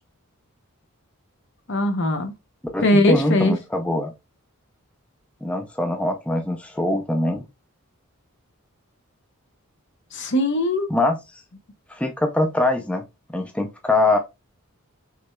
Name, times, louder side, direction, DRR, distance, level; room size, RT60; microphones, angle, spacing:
voice 1, 1.7-2.3 2.8-3.5 10.1-10.9, left 1 dB, 55° left, 0.9 m, -20 dB
voice 2, 2.7-4.1 5.4-7.5 10.9-11.2 11.9-13.0 13.3-14.2, left 2 dB, 5° left, 0.5 m, -23 dB
6.0 x 3.2 x 2.3 m
head